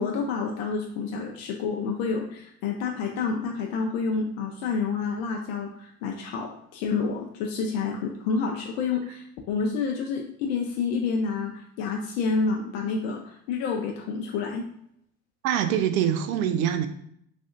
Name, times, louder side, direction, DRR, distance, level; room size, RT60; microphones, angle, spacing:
voice 1, 0.0-14.6, left 5 dB, 65° left, 1 dB, 0.5 m, -29 dB
voice 2, 15.4-16.9, right 9 dB, 75° right, 9 dB, 0.5 m, -24 dB
3.2 x 2.6 x 2.5 m, 0.70 s
hypercardioid pair, 70°, 42 cm